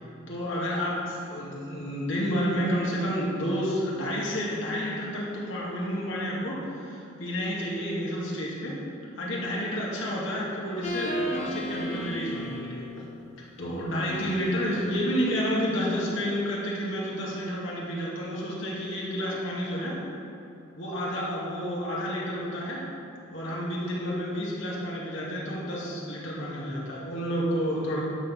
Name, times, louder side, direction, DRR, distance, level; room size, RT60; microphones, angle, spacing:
voice 1, 0.3-8.8 9.2-12.9 13.6-20.0 20.8-22.9 23.3-28.0, equal, 65° left, -5 dB, 2.3 m, -30 dB
sound 1, 10.8-12.8 14.1-15.9, equal, 35° left, 1.3 m, -35 dB
11.5 x 4.7 x 7.0 m, 2.6 s
head